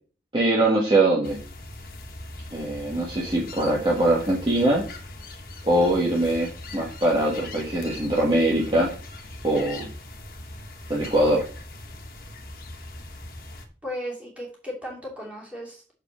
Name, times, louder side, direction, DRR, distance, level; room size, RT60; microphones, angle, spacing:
voice 1, 0.3-1.4 2.5-4.8 5.6-8.9 9.4-9.8 10.9-11.4, right 1 dB, 30° right, -4 dB, 1.4 m, -22 dB
sound 1, 1.2-13.7, left 2 dB, 50° left, 1.3 m, -40 dB
voice 2, 13.8-15.8, equal, 5° right, -4 dB, 2.7 m, -35 dB
6.8 x 4.9 x 6.0 m, 0.40 s
head